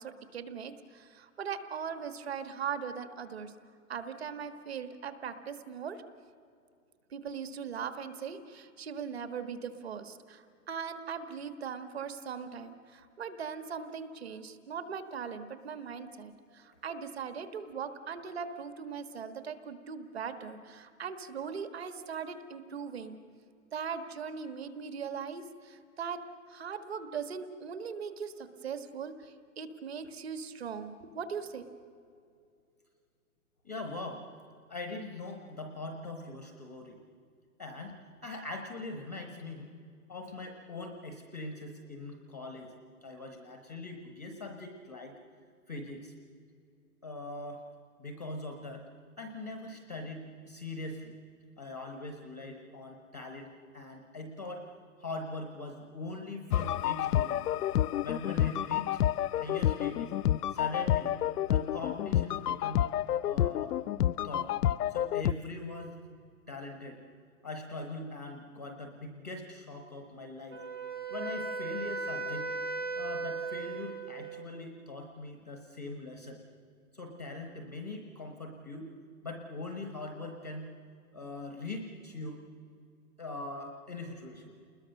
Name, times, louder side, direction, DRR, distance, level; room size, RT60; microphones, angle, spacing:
voice 1, 0.0-3.5 3.9-6.0 7.1-23.2 23.7-31.7, right 6 dB, 40° right, 10 dB, 1.6 m, -40 dB
voice 2, 33.6-34.3 34.7-37.0 37.6-39.7 40.1-42.7 43.0-45.2 45.7-46.1 47.0-47.7 48.0-48.9 49.2-51.1 51.6-54.7 55.0-57.5 58.0-60.1 60.5-61.2 61.5-62.9 63.2-63.8 64.2-64.6 64.9-66.0 66.5-67.0 67.4-70.6 71.1-72.5 72.9-76.4 76.9-78.9 79.2-80.7 81.1-82.4 83.2-84.5, left 2 dB, 10° left, 4 dB, 0.6 m, -41 dB
sound 1, 56.5-65.3, left 12 dB, 80° left, 0.6 m, -29 dB
Wind instrument woodwind instrument, 70.5-74.6, right 3 dB, 15° right, 0.9 m, -37 dB
29.0 x 20.5 x 6.6 m, 2.3 s
hypercardioid pair, 175°, 46 cm